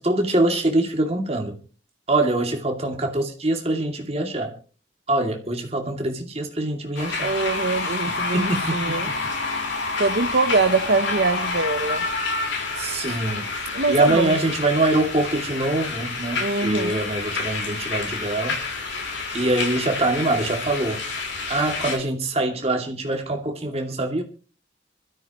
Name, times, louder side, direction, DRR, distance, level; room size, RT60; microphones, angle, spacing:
voice 1, 0.0-1.6 2.1-4.5 5.1-7.3 8.1-9.2 12.7-13.5 13.9-18.6 19.3-21.0 21.5-24.2, right 2 dB, 35° right, 2.5 m, -24 dB
sound 1, 6.9-22.0, left 3 dB, 80° left, 4.5 m, -28 dB
voice 2, 7.2-9.1 10.0-12.0 13.0-13.2 13.7-14.4 16.4-17.0, right 3 dB, 60° right, 0.8 m, -23 dB
25.0 x 13.5 x 3.0 m
head